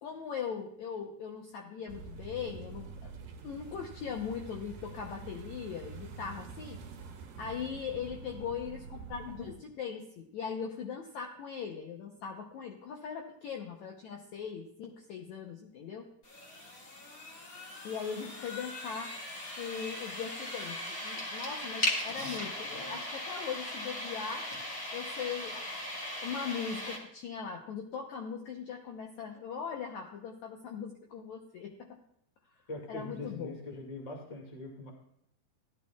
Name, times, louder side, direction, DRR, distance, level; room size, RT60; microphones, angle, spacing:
voice 1, 0.0-3.1 3.4-6.8 7.4-16.1 17.8-19.1 19.6-24.5 24.9-25.8 26.2-32.0 32.9-33.6, left 6 dB, 75° left, 2 dB, 1.7 m, -40 dB
sound 1, 1.9-9.6, right 5 dB, 70° right, 2.7 m, -46 dB
sound 2, 16.2-27.0, left 1 dB, 35° left, 1.5 m, -38 dB
voice 2, 32.7-34.9, left 2 dB, 20° left, 1 dB, 1.0 m, -42 dB
16.0 x 11.5 x 2.3 m, 0.73 s
omnidirectional pair, 4.3 m